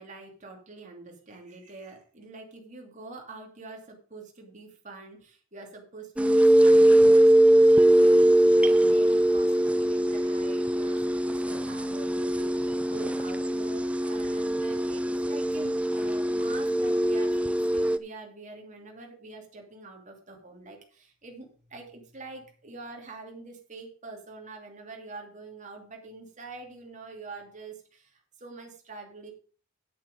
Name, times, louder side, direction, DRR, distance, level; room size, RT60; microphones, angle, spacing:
voice 1, 0.0-29.3, right 3 dB, 35° right, 1 dB, 2.8 m, -45 dB
sound 1, 6.2-18.0, right 1 dB, 5° right, 0.4 m, -22 dB
10.0 x 8.2 x 5.1 m, 0.39 s
head